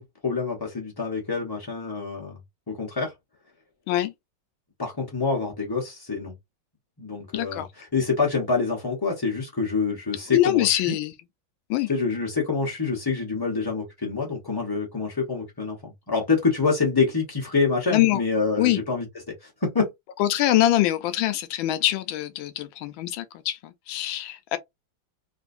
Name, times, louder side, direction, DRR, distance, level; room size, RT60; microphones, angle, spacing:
voice 1, 0.0-2.4 2.7-3.1 4.8-6.3 7.0-11.0 11.9-19.1 19.4-19.9, left 4 dB, 40° left, 0.3 m, -26 dB
voice 2, 7.3-7.7 10.3-11.1 11.7-11.9 17.9-18.2 18.6-18.8 20.2-24.6, left 14 dB, 80° left, 1.3 m, -23 dB
3.7 x 2.5 x 2.5 m
omnidirectional pair, 2.2 m